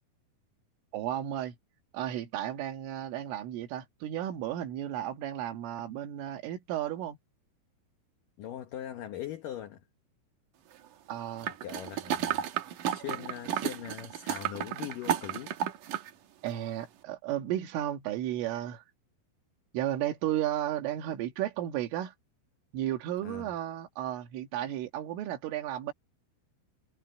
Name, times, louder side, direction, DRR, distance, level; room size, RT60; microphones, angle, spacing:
voice 1, 0.9-1.6 1.9-7.2 11.1-11.5 16.4-18.8 19.7-22.1 22.7-25.9, right 12 dB, 90° right, 4.3 m, -33 dB
voice 2, 8.4-9.8 11.6-12.4 12.9-15.6 23.2-23.5, left 11 dB, 90° left, 1.8 m, -41 dB
sound 1, 11.4-16.1 16.5-16.6, right 10 dB, 70° right, 2.0 m, -33 dB
omnidirectional pair, 5.6 m